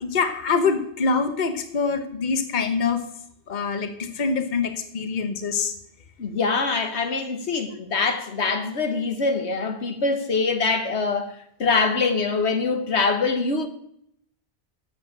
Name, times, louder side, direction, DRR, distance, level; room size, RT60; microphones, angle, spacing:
voice 1, 0.0-3.0 3.5-5.7, left 5 dB, 45° left, 1.2 m, -24 dB
voice 2, 6.2-11.3 11.6-13.7, left 4 dB, 80° left, 1.5 m, -24 dB
8.5 x 7.8 x 8.8 m
omnidirectional pair, 1.1 m